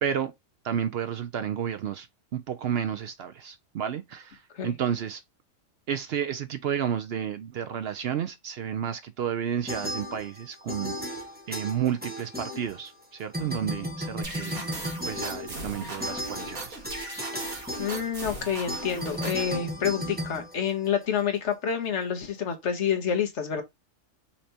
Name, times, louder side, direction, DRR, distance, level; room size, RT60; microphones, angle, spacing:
voice 1, 0.0-0.3 0.6-2.1 2.3-5.2 5.9-16.8, right 9 dB, 65° right, 0.6 m, -31 dB
sound 1, 9.7-10.4 10.7-13.0 13.3-21.2, equal, 5° right, 1.1 m, -35 dB
sound 2, 14.2-19.6, right 2 dB, 85° right, 2.5 m, -38 dB
voice 2, 14.5-15.0 15.8-16.1 17.8-23.6, left 8 dB, 60° left, 1.3 m, -28 dB
5.7 x 3.3 x 2.8 m
omnidirectional pair, 1.4 m